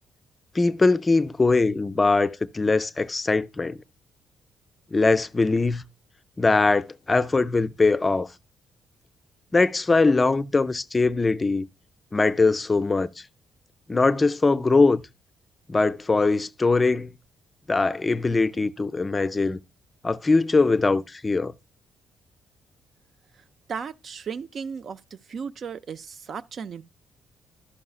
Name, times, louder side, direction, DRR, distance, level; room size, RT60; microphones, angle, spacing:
voice 1, 0.5-3.8 4.9-5.8 6.4-8.3 9.5-11.7 12.1-13.1 13.9-15.0 15.7-17.1 17.7-19.6 20.0-21.5, left 3 dB, 25° left, 0.4 m, -21 dB
voice 2, 23.7-25.0 25.3-26.8, right 6 dB, 55° right, 0.4 m, -35 dB
11.5 x 5.5 x 2.4 m
cardioid pair, 90°, 0 cm